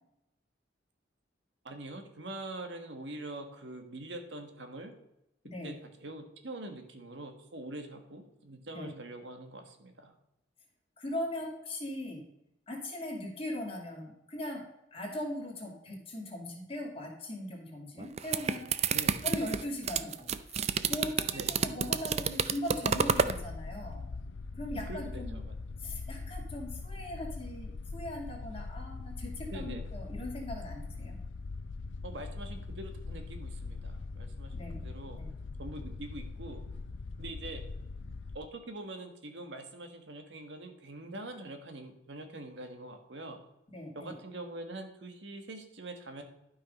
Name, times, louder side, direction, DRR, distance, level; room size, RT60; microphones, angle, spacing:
voice 1, 1.6-4.9 5.6-10.1 18.9-19.2 21.3-21.5 24.7-25.5 29.5-29.9 32.0-35.2 35.6-36.6 37.2-37.6 38.3-43.4 43.9-46.2, right 2 dB, 75° right, 5 dB, 1.5 m, -44 dB
voice 2, 5.4-5.8 8.7-8.9 11.0-12.2 12.7-14.7 14.9-18.7 19.2-24.0 24.6-25.4 25.8-31.2 34.5-34.9 35.1-35.3 43.7-44.2, left 1 dB, 30° left, 0 dB, 2.4 m, -39 dB
sound 1, 18.0-23.4, right 6 dB, 35° right, 0.4 m, -30 dB
sound 2, 23.1-38.4, left 3 dB, 85° left, 0.5 m, -41 dB
12.0 x 5.7 x 5.3 m, 0.86 s
head